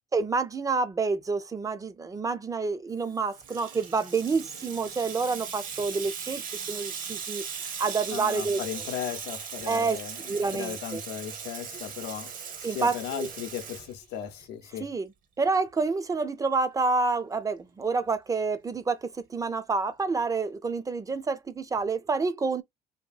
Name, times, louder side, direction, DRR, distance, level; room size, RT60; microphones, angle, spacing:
voice 1, 0.1-6.4 6.7-7.4 7.8-8.6 9.7-10.0 10.3-11.0 12.6-13.3 14.8-15.1 15.4-22.6, right 4 dB, 20° right, 0.3 m, -28 dB
Water tap faucet / Sink (filling or washing), 3.0-14.4, right 6 dB, 55° right, 0.8 m, -39 dB
voice 2, 8.1-10.2 10.5-12.3 12.6-14.9, left 9 dB, 90° left, 0.6 m, -36 dB
2.8 x 2.6 x 2.2 m
cardioid pair, 110°, 17 cm